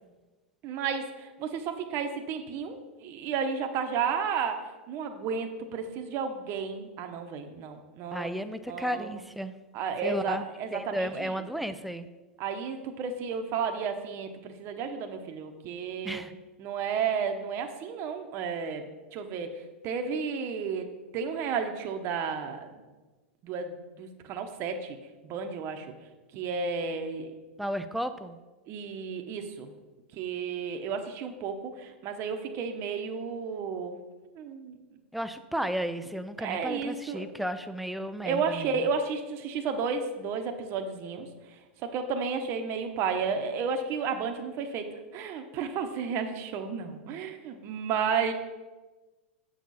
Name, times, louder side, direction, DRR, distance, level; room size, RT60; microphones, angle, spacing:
voice 1, 0.6-4.6 4.9-8.3 8.7-9.1 9.7-11.4 12.4-16.2 16.6-18.9 19.1-19.5 19.8-20.9 21.1-22.7 23.4-25.0 25.2-25.9 26.3-27.3 28.7-29.7 30.1-34.0 34.3-34.8 36.4-37.2 38.2-41.3 41.8-44.9 45.1-48.3, right 6 dB, 45° right, 6 dB, 1.0 m, -32 dB
voice 2, 8.1-9.5 10.0-12.1 16.0-16.3 27.6-28.4 35.1-38.7, equal, ahead, 10 dB, 0.5 m, -33 dB
8.1 x 6.4 x 4.1 m, 1.2 s
hypercardioid pair, 110°, 7 cm